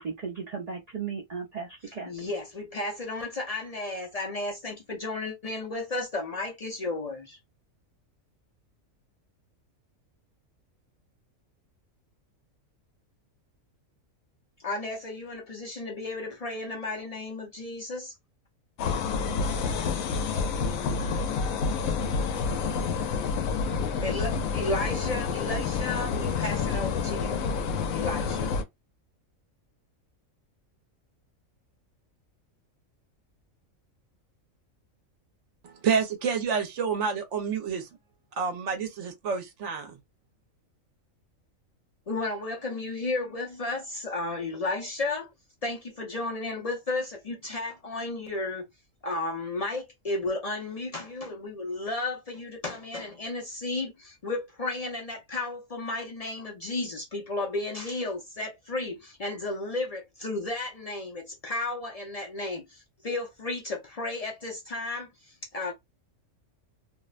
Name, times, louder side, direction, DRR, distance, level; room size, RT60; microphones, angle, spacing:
voice 1, 0.0-2.3, right 5 dB, 50° right, 0.5 m, -36 dB
voice 2, 2.1-7.4 14.6-18.1 24.0-27.5 27.9-28.5 42.1-45.3 45.6-48.7 49.0-65.7, left 2 dB, 50° left, 0.4 m, -33 dB
sound 1, 18.8-28.6, left 5 dB, 85° left, 1.0 m, -28 dB
voice 3, 35.6-37.9 38.4-40.0, right 6 dB, 65° right, 1.0 m, -28 dB
2.6 x 2.1 x 2.3 m
omnidirectional pair, 1.4 m